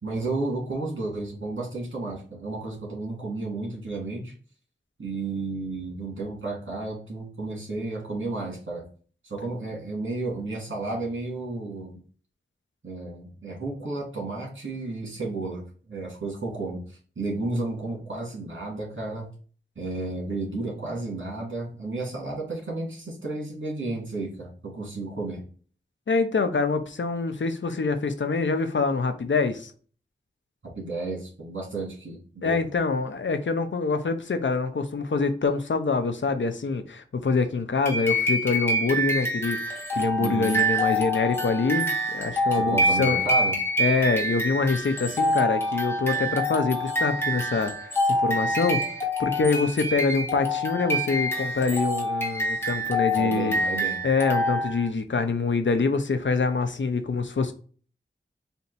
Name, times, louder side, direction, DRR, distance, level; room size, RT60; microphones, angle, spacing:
voice 1, 0.0-4.3 5.0-8.9 9.2-12.0 12.8-19.3 19.8-25.5 30.8-32.6 40.2-40.6 42.5-43.6 53.2-54.0, right 3 dB, 75° right, 2.2 m, -32 dB
voice 2, 26.1-29.7 32.4-43.2 43.8-48.0 48.2-48.8 49.2-53.6 54.0-57.5, left 4 dB, 75° left, 0.7 m, -25 dB
sound 1, 37.8-54.9, equal, 10° left, 1.3 m, -26 dB
4.4 x 2.8 x 4.0 m
wide cardioid pair, 60°, 20 cm